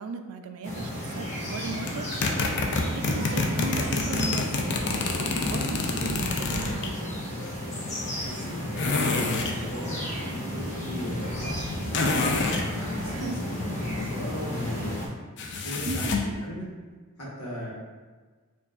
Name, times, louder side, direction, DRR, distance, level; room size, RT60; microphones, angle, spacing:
voice 1, 0.0-2.4 2.8-6.9 13.1-13.4 15.8-16.2, right 4 dB, 70° right, 7 dB, 0.3 m, -37 dB
sound 1, 0.6-15.1, left 1 dB, 30° left, 0.8 m, -33 dB
sound 2, 1.9-6.9 8.8-9.6 11.9-12.7 15.4-16.3, left 3 dB, 55° left, 0.4 m, -27 dB
voice 2, 8.1-9.2 9.5-12.2 12.7-15.0 15.6-16.7 17.2-17.7, equal, 90° left, -5 dB, 1.2 m, -37 dB
4.6 x 2.5 x 2.4 m, 1.4 s
head